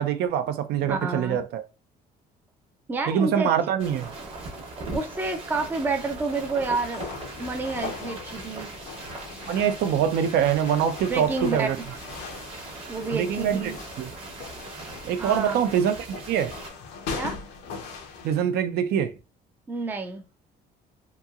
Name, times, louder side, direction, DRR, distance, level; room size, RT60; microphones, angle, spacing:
voice 1, 0.0-1.6 3.1-4.1 9.5-11.8 13.1-14.1 15.0-16.5 18.2-19.1, right 9 dB, 75° right, 0.4 m, -24 dB
voice 2, 0.9-1.4 2.9-3.5 4.9-7.0 7.4-8.7 11.1-11.7 12.9-13.8 15.2-15.7 17.1-17.4 19.7-20.2, right 3 dB, 10° right, 0.4 m, -29 dB
sound 1, 3.8-16.7, right 2 dB, 35° right, 0.9 m, -40 dB
sound 2, 6.9-18.4, left 4 dB, 80° left, 0.6 m, -40 dB
2.9 x 2.7 x 2.3 m
cardioid pair, 160°, 17 cm